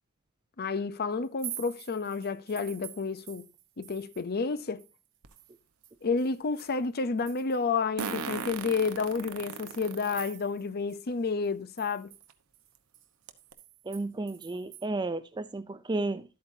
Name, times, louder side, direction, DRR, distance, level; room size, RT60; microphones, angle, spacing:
voice 1, 0.6-3.5 3.8-4.8 6.0-12.1, left 4 dB, 45° left, 0.6 m, -30 dB
sound 1, 1.2-4.3 4.6-7.8 8.2-8.3 8.8-10.7 11.0-11.1 11.4-14.9, right 13 dB, 60° right, 1.3 m, -48 dB
Fart, 5.2-5.3 8.0-10.3 10.9-11.0 12.3-12.4 12.8-12.9 13.3-13.5, right 5 dB, 80° right, 1.1 m, -37 dB
voice 2, 13.9-16.2, right 2 dB, 20° right, 0.4 m, -33 dB
12.5 x 8.6 x 2.7 m
head